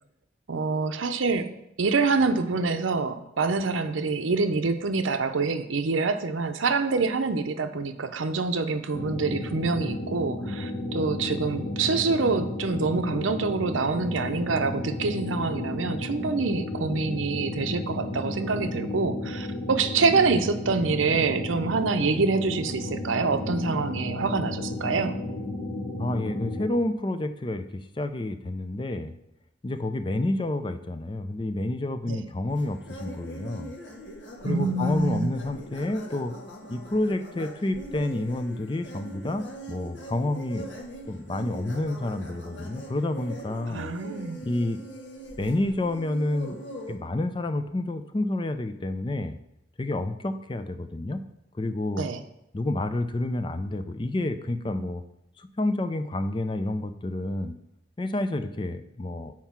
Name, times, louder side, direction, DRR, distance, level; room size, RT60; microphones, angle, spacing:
voice 1, 0.5-1.5 1.8-25.2 32.1-32.3 34.4-35.3 43.7-44.4 52.0-52.2, right 4 dB, 90° right, 9 dB, 0.6 m, -26 dB
sound 1, 8.9-26.7, left 2 dB, 45° left, 0.9 m, -33 dB
voice 2, 26.0-29.1 29.6-33.7 34.4-36.3 36.7-40.7 41.1-43.9 44.4-44.8 45.4-46.6 46.9-49.4 49.8-51.2 51.6-52.0 52.5-55.0 55.4-57.6 58.0-59.3, left 2 dB, 25° left, 9 dB, 0.4 m, -29 dB
sound 2, 32.5-47.0, right 1 dB, 70° left, 1.4 m, -42 dB
7.4 x 4.5 x 5.9 m, 0.82 s
head